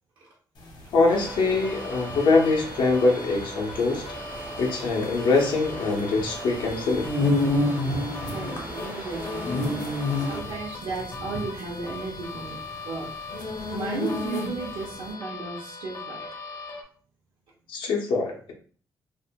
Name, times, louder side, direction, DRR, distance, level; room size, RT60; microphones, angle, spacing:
sound 1, 0.6-14.8, left 2 dB, 65° left, 0.9 m, -30 dB
voice 1, 0.9-4.0 4.6-7.1 17.7-18.5, left 3 dB, 85° left, 1 dB, 0.6 m, -23 dB
sound 2, 1.1-16.8, left 3 dB, 40° left, 0.5 m, -40 dB
sound 3, 1.1-10.4, right 3 dB, 25° right, 0.4 m, -41 dB
voice 2, 8.2-12.6 12.9-13.1 13.7-16.2, right 4 dB, 85° right, -4 dB, 0.7 m, -35 dB
2.5 x 2.1 x 2.8 m, 0.43 s
wide cardioid pair, 145°, 8 cm